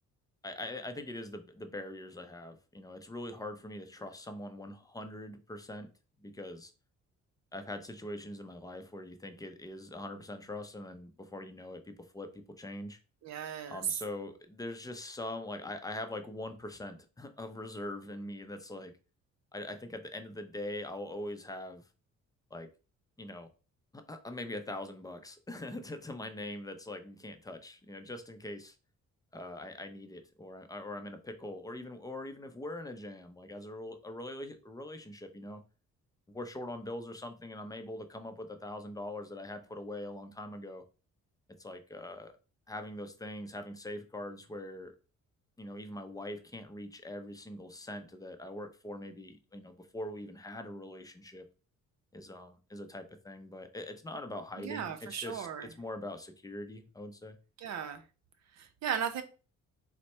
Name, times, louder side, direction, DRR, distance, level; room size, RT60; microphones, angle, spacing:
voice 1, 0.4-5.9 6.2-6.7 7.5-13.0 13.7-18.9 19.5-21.8 22.5-22.7 23.2-23.5 23.9-28.8 29.3-35.6 36.3-40.8 41.6-42.3 42.7-44.9 45.6-51.4 52.1-55.5 55.8-57.4, left 1 dB, 10° left, 0.5 m, -42 dB
voice 2, 13.2-14.0 54.6-55.7 57.6-58.0 58.5-59.2, right 8 dB, 60° right, 0.7 m, -36 dB
4.1 x 2.1 x 3.2 m
cardioid pair, 90°, 30 cm